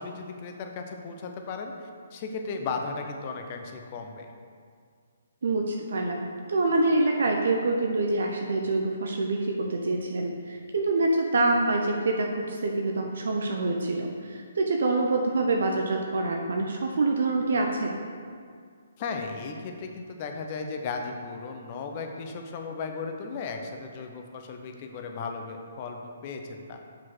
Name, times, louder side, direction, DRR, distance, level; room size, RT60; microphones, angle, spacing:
voice 1, 0.0-1.7 2.1-4.3 19.0-26.8, left 4 dB, 40° left, 4 dB, 0.9 m, -36 dB
voice 2, 5.4-6.2 6.5-18.0, right 2 dB, 70° right, 1 dB, 0.8 m, -26 dB
5.7 x 5.1 x 6.1 m, 2.1 s
figure-of-eight pair, 135°, 0 cm